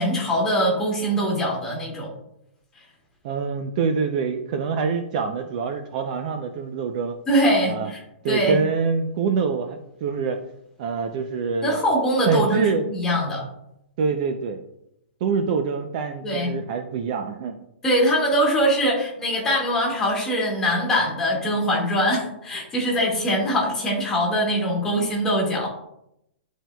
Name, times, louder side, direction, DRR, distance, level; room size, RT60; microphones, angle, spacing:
voice 1, 0.0-2.1 7.3-8.0 8.3-8.6 11.6-13.4 16.2-16.5 17.8-25.7, equal, 10° left, -4 dB, 1.9 m, -22 dB
voice 2, 3.2-7.2 7.7-7.9 8.2-10.4 10.8-11.8 12.3-12.8 14.0-14.6 15.2-17.6, right 5 dB, 35° right, 6 dB, 0.5 m, -25 dB
11.0 x 4.5 x 2.3 m, 0.80 s
hypercardioid pair, 165°, 6 cm